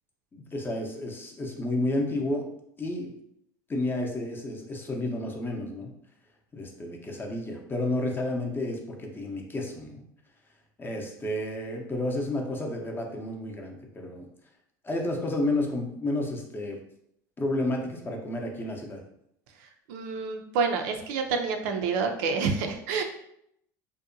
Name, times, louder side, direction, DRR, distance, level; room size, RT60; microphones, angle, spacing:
voice 1, 0.3-2.5 2.8-3.1 3.7-5.9 6.5-10.0 10.8-14.3 14.8-16.8 17.4-19.0, left 1 dB, 20° left, 1 dB, 0.6 m, -31 dB
voice 2, 19.9-23.0, right 5 dB, 65° right, 4 dB, 0.4 m, -28 dB
2.6 x 2.1 x 2.5 m, 0.73 s
hypercardioid pair, 80°, 10 cm